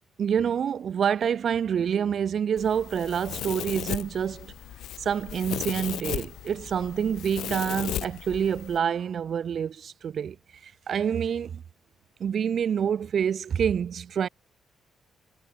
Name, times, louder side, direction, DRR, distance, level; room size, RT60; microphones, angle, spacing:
voice 1, 0.2-4.5 5.0-10.4 10.6-11.6 12.2-14.3, right 8 dB, 40° right, 5.6 m, -27 dB
Domestic sounds home sounds, 2.6-8.8, left 12 dB, 75° left, 2.2 m, -36 dB
cardioid pair, 180°, 0 cm